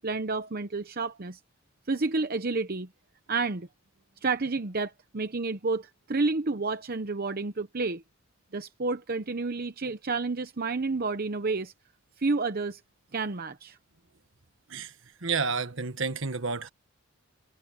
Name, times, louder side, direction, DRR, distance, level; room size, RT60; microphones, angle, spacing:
voice 1, 0.0-1.4 1.9-2.9 3.3-3.7 4.2-8.0 8.5-11.7 12.2-12.8 13.1-13.8, right 3 dB, 45° right, 0.8 m, -30 dB
voice 2, 15.2-16.7, right 4 dB, 65° right, 1.5 m, -30 dB
head